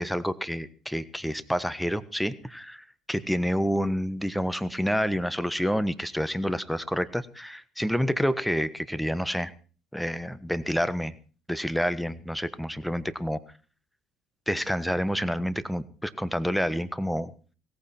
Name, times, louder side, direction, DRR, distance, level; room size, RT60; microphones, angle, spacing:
voice 1, 0.0-9.5 9.9-11.1 11.5-13.4 14.5-17.3, equal, ahead, 15 dB, 1.3 m, -28 dB
17.5 x 15.0 x 4.4 m, 0.37 s
hypercardioid pair, 70°, 0 cm